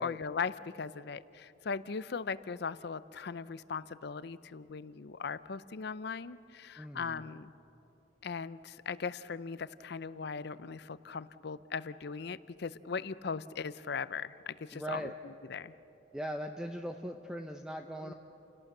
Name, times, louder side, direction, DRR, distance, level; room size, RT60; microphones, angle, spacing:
voice 1, 0.0-7.5 8.2-15.7 18.0-18.1, left 5 dB, 60° left, 16 dB, 0.6 m, -39 dB
voice 2, 6.8-7.3 14.7-15.1 16.1-18.1, right 1 dB, 5° right, 4 dB, 0.7 m, -40 dB
29.5 x 17.5 x 6.6 m, 3.0 s
head